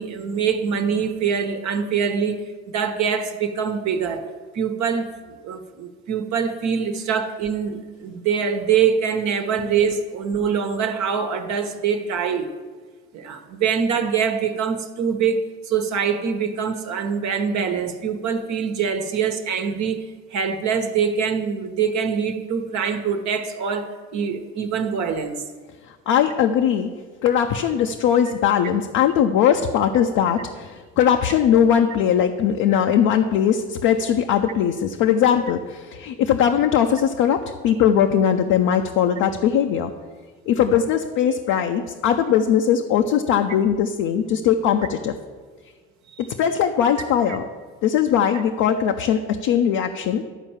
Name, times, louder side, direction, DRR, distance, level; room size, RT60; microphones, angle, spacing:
voice 1, 0.0-2.4 2.7-12.5 13.1-20.1 20.3-25.4 28.3-28.4 47.3-47.4, right 6 dB, 70° right, 1.1 m, -24 dB
voice 2, 26.1-26.9 27.2-39.9 40.5-45.1 46.4-47.4 47.8-50.2, left 8 dB, 85° left, 0.6 m, -20 dB
12.0 x 4.4 x 7.2 m
supercardioid pair, 70°, 29 cm